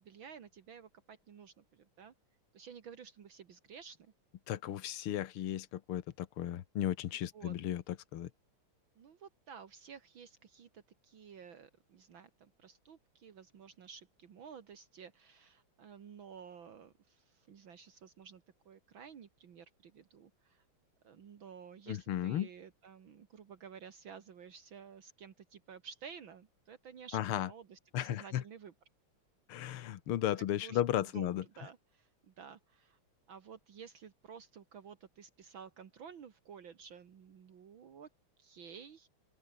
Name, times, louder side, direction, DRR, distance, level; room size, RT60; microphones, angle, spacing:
voice 1, 0.0-2.1 2.5-4.1 7.3-7.6 9.0-20.6 21.0-28.7 30.4-31.3 31.6-33.0 33.3-38.1 38.4-39.1, right 7 dB, 65° right, 2.4 m, -53 dB
voice 2, 4.5-8.3 21.9-22.5 27.1-27.5 27.9-28.4 29.5-31.4, left 12 dB, 85° left, 2.0 m, -35 dB
open air
omnidirectional pair, 2.4 m